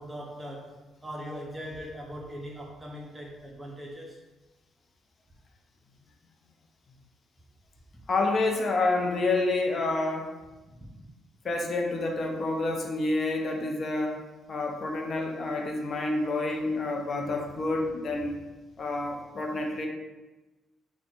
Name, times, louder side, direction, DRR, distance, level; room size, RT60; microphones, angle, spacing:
voice 1, 0.0-4.2 10.8-10.9, equal, 15° right, -2 dB, 0.6 m, -40 dB
voice 2, 8.1-10.3 11.4-14.2 14.5-18.4 18.8-19.9, left 2 dB, 45° left, 2 dB, 0.6 m, -28 dB
3.4 x 2.2 x 4.3 m, 1.2 s
cardioid pair, 90°, 0 cm